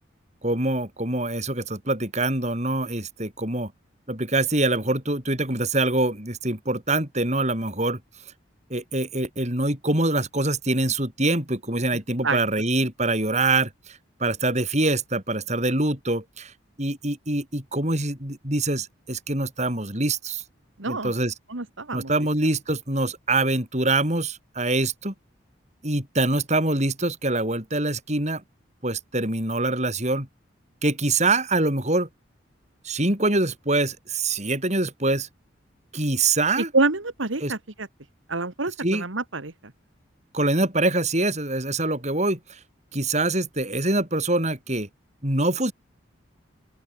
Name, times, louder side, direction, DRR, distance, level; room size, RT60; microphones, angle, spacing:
voice 1, 0.4-3.7 4.1-8.0 8.7-13.7 14.2-16.5 16.8-20.4 20.9-21.3 21.9-25.1 25.8-28.4 28.8-30.3 30.8-32.1 32.8-35.3 35.9-36.7 37.4-37.5 38.8-39.0 40.3-42.4 42.9-44.9 45.2-45.7, right 2 dB, 35° right, 7.3 m, -24 dB
voice 2, 20.8-21.1 21.5-22.1 36.6-37.9 38.3-39.5, right 3 dB, 85° right, 2.1 m, -26 dB
open air
head